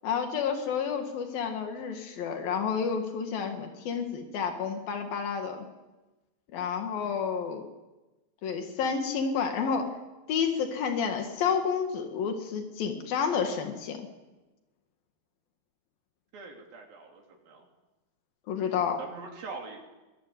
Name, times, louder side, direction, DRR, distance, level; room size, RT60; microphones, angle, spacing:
voice 1, 0.0-5.7 6.5-7.6 8.4-9.9 10.3-14.1 18.5-19.0, left 6 dB, 85° left, 5 dB, 3.7 m, -30 dB
voice 2, 0.6-1.1 7.1-7.2 16.3-17.7 19.0-19.9, right 4 dB, 85° right, 0 dB, 4.9 m, -44 dB
23.5 x 21.0 x 9.4 m, 1.1 s
omnidirectional pair, 4.0 m